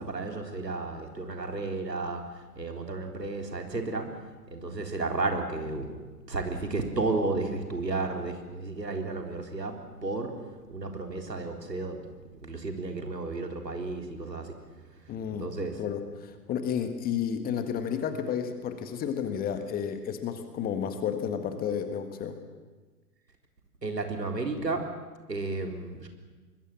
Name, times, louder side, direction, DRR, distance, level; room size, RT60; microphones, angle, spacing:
voice 1, 0.0-4.1 4.5-6.0 6.3-10.4 10.7-12.1 12.4-14.5 15.3-15.8 23.8-24.9 25.3-26.1, right 3 dB, 75° right, 4 dB, 3.8 m, -33 dB
voice 2, 15.1-15.5 15.8-22.4, left 8 dB, 20° left, 8 dB, 1.7 m, -31 dB
25.0 x 21.0 x 7.5 m, 1.3 s
figure-of-eight pair, 115°, 50 cm